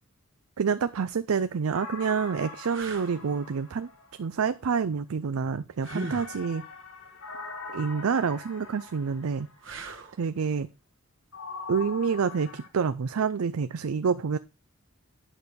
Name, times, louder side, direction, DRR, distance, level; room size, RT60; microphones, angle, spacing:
voice 1, 0.6-3.9 4.2-6.6 7.7-9.5 10.2-10.7 11.7-14.4, right 6 dB, 80° right, 0.5 m, -28 dB
sound 1, 1.3-1.4 2.0-2.1 2.7-3.2 5.8-6.4 9.6-10.2 13.2-13.4, right 2 dB, 60° right, 1.5 m, -38 dB
sound 2, 1.7-4.5 5.8-9.7 11.3-12.7, left 4 dB, 70° left, 2.2 m, -42 dB
9.0 x 6.4 x 5.1 m
head